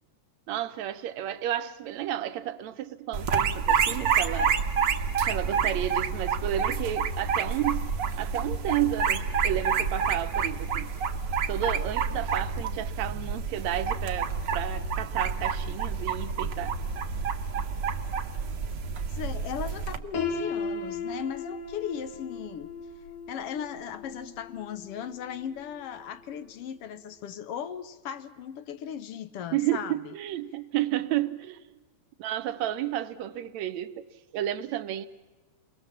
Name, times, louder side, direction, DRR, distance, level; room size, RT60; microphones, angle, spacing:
voice 1, 0.5-4.6 5.2-7.9 8.2-10.9 11.5-16.8 29.5-31.6 32.2-34.0 34.3-35.1, right 12 dB, 75° right, 2.1 m, -31 dB
sound 1, 3.1-20.0, right 6 dB, 55° right, 1.4 m, -28 dB
voice 2, 19.1-22.7 23.3-30.1, left 8 dB, 65° left, 1.7 m, -37 dB
Piano, 20.1-26.0, left 4 dB, 85° left, 3.9 m, -37 dB
29.0 x 21.5 x 7.3 m
omnidirectional pair, 3.3 m